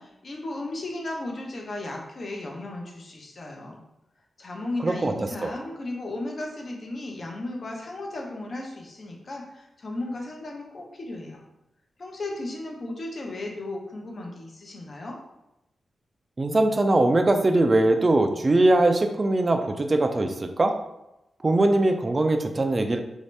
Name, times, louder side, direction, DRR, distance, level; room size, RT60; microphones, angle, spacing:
voice 1, 0.0-3.8 4.4-11.4 12.0-15.2, left 2 dB, 50° left, 0 dB, 0.7 m, -35 dB
voice 2, 4.8-5.1 5.4-5.5 16.4-20.7 21.4-23.0, right 2 dB, 35° right, 6 dB, 0.4 m, -21 dB
3.1 x 2.7 x 3.2 m, 0.90 s
cardioid pair, 80°, 0 cm